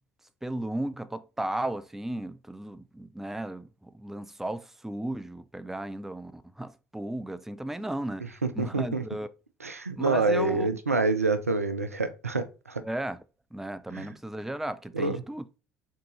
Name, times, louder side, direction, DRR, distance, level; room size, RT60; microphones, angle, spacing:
voice 1, 0.4-8.3 8.5-9.3 10.0-10.8 12.8-13.2 13.5-15.4, right 1 dB, 5° right, 0.4 m, -35 dB
voice 2, 8.4-9.0 9.6-12.8 13.9-14.1 14.9-15.2, right 3 dB, 90° right, 0.4 m, -27 dB
4.4 x 3.8 x 3.0 m
figure-of-eight pair, 55°, 8 cm